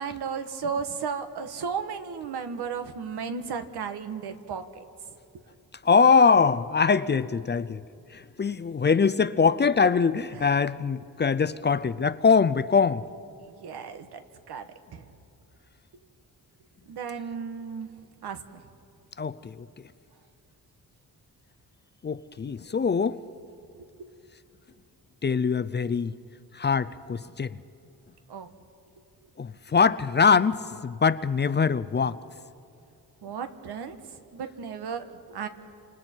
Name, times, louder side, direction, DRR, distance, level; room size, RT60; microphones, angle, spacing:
voice 1, 0.0-4.8 13.4-14.2 14.5-15.0 16.9-17.9 18.2-18.6 23.7-24.2 28.3-28.5 33.2-35.5, right 6 dB, 90° right, 1.4 m, -35 dB
voice 2, 5.8-7.8 8.1-13.0 19.2-19.7 22.0-23.2 25.2-26.1 26.5-27.6 29.4-32.2, left 5 dB, 30° left, 0.5 m, -23 dB
29.5 x 26.5 x 4.5 m
wide cardioid pair, 115°, 38 cm